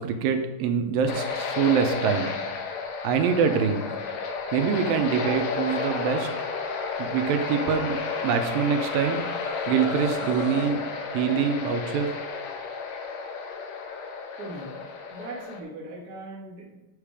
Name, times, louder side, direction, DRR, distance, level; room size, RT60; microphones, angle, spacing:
voice 1, 0.0-2.3 3.0-3.8 4.5-6.3 7.0-8.0 8.2-9.2 9.7-10.8 11.1-12.1, right 7 dB, 80° right, 6 dB, 2.3 m, -24 dB
sound 1, 1.1-15.6, left 5 dB, 70° left, 1.7 m, -32 dB
sound 2, 5.5-10.7, left 1 dB, 90° left, 4.2 m, -43 dB
voice 2, 14.4-14.7 15.1-16.7, right 2 dB, 40° right, -4 dB, 1.5 m, -39 dB
8.9 x 5.0 x 4.9 m, 1.0 s
omnidirectional pair, 4.4 m